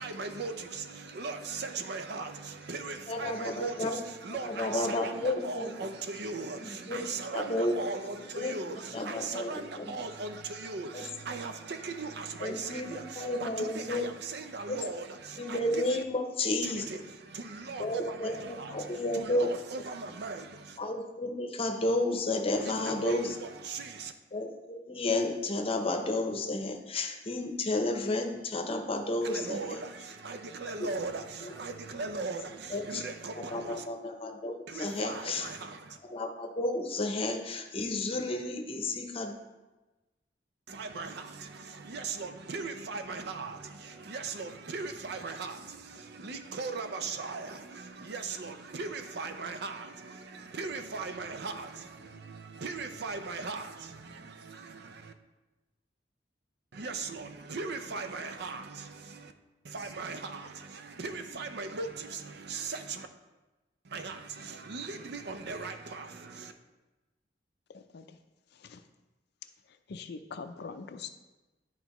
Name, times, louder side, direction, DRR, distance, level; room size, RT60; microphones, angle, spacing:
voice 1, 0.0-16.0 16.6-20.8 22.6-24.1 29.2-33.9 34.7-36.0 40.7-55.1 56.7-59.3 59.7-63.1 63.9-66.5, right 4 dB, 65° right, 8 dB, 0.6 m, -39 dB
voice 2, 3.1-4.0 4.4-5.8 6.6-7.0 7.3-7.8 8.3-8.5 8.9-10.1 10.9-11.0 12.4-14.1 14.7-14.8 15.4-16.8 17.8-19.5 20.8-23.3 24.3-29.8 30.8-30.9 32.7-33.0 33.4-35.5 36.0-39.3, left 2 dB, 30° left, 4 dB, 0.8 m, -32 dB
voice 3, 69.9-71.1, left 5 dB, 65° left, 9 dB, 0.5 m, -41 dB
10.5 x 4.5 x 3.0 m, 1.1 s
head